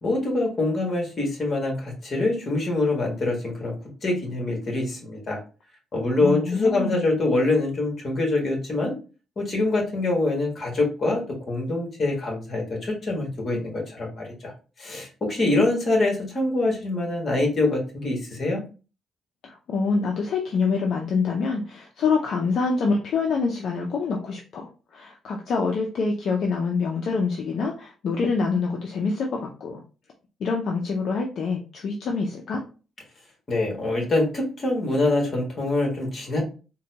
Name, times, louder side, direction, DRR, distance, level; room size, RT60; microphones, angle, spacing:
voice 1, 0.0-3.7 4.0-5.4 5.9-9.0 9.4-14.5 14.8-18.6 33.5-36.4, left 2 dB, 40° left, 0 dB, 1.6 m, -24 dB
voice 2, 6.2-7.0 19.4-29.8 30.4-32.6, left 4 dB, 65° left, 1 dB, 0.5 m, -26 dB
3.9 x 2.2 x 2.8 m, 0.35 s
cardioid pair, 90°, 0 cm